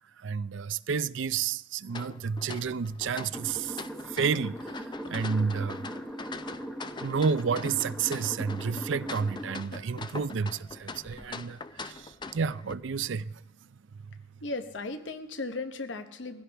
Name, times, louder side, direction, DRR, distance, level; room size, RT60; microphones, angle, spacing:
voice 1, 0.2-3.8 4.1-5.9 7.0-13.4, right 5 dB, 70° right, 0.5 m, -31 dB
sound 1, 1.9-12.7, left 3 dB, 25° left, 0.5 m, -43 dB
sound 2, 3.3-9.6, right 1 dB, 5° left, 1.0 m, -40 dB
voice 2, 14.4-16.4, left 3 dB, 70° left, 1.0 m, -36 dB
20.5 x 16.0 x 3.4 m
head